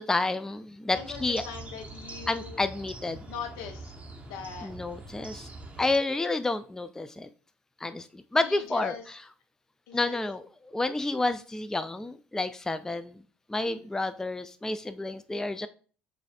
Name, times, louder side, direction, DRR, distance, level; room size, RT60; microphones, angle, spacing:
voice 1, 0.0-1.4 2.3-3.2 4.6-5.5 5.8-7.3 7.8-8.9 9.9-13.2 13.5-15.7, left 2 dB, 10° left, 11 dB, 0.3 m, -30 dB
voice 2, 0.9-2.6 3.3-3.9 4.2-4.7 8.4-9.0 9.9-10.2 13.7-13.9, left 6 dB, 75° left, 5 dB, 0.8 m, -40 dB
sound 1, 0.9-6.0, right 2 dB, 20° right, 0.9 m, -44 dB
6.2 x 2.6 x 2.4 m, 0.40 s
hypercardioid pair, 60°, 6 cm